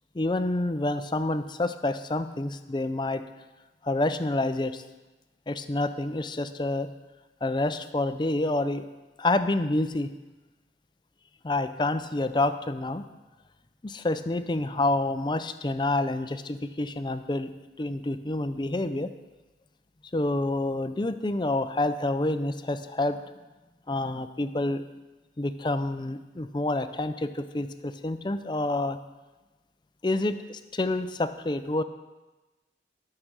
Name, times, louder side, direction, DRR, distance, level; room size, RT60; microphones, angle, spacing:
voice 1, 0.1-3.2 3.8-4.8 5.5-6.9 7.4-8.9 9.2-10.1 11.4-13.0 13.8-17.5 17.8-19.1 20.1-23.2 23.9-24.8 25.4-29.0 30.0-31.8, left 2 dB, 25° left, 10 dB, 0.5 m, -28 dB
12.5 x 6.7 x 6.1 m, 1.1 s
head